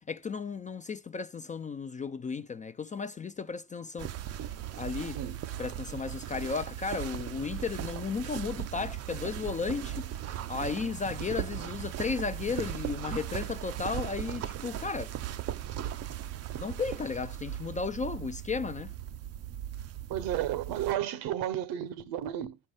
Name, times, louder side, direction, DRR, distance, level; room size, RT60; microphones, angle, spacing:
voice 1, 0.1-4.3 4.8-5.2 5.6-15.1 16.6-18.9, left 5 dB, 20° left, 0.4 m, -34 dB
sound 1, 4.0-20.9, right 11 dB, 35° right, 0.6 m, -38 dB
voice 2, 20.1-22.6, right 11 dB, 60° right, 1.0 m, -32 dB
10.5 x 5.7 x 4.9 m
hypercardioid pair, 75°, 42 cm